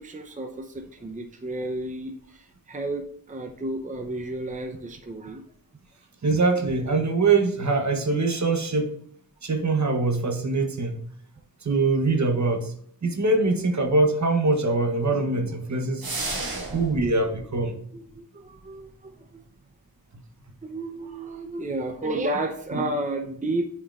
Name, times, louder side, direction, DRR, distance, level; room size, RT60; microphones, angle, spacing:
voice 1, 0.0-5.4 16.7-16.8 17.9-19.4 20.6-23.7, right 2 dB, 20° right, 4 dB, 0.6 m, -32 dB
voice 2, 6.2-8.9 9.4-11.1 11.6-12.7 13.0-16.1 16.7-17.8 22.7-22.9, right 3 dB, 50° right, 5 dB, 1.0 m, -23 dB
sound 1, 16.0-17.0, right 2 dB, 75° right, 1.4 m, -31 dB
8.8 x 4.5 x 2.4 m, 0.63 s
cardioid pair, 55°, 36 cm